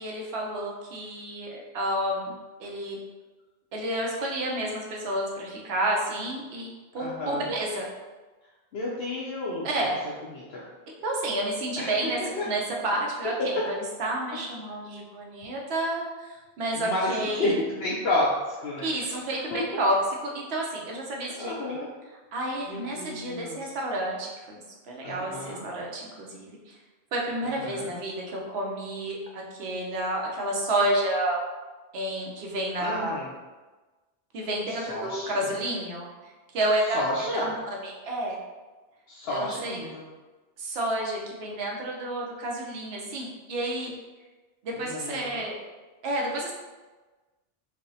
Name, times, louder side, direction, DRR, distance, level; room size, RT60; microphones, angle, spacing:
voice 1, 0.0-2.3 2.6-3.0 3.7-6.7 6.9-7.9 9.6-9.9 11.0-12.2 12.4-13.7 14.0-17.5 18.8-21.8 22.3-26.8 27.1-31.4 31.9-33.3 34.3-36.1 36.5-37.0 37.4-38.4 39.3-39.9 40.6-43.9 44.6-45.6 46.0-46.5, right 1 dB, 70° right, -1 dB, 1.0 m, -30 dB
voice 2, 7.0-7.5 8.7-9.7 10.3-10.6 11.8-12.5 14.3-14.4 16.7-18.9 19.5-19.8 21.4-21.9 22.7-23.7 25.0-25.6 27.4-27.9 32.8-33.3 34.7-35.5 36.9-37.5 39.1-40.0 44.8-45.3, left 1 dB, 70° left, -7 dB, 0.8 m, -31 dB
4.6 x 2.0 x 2.7 m, 1.2 s
omnidirectional pair, 1.1 m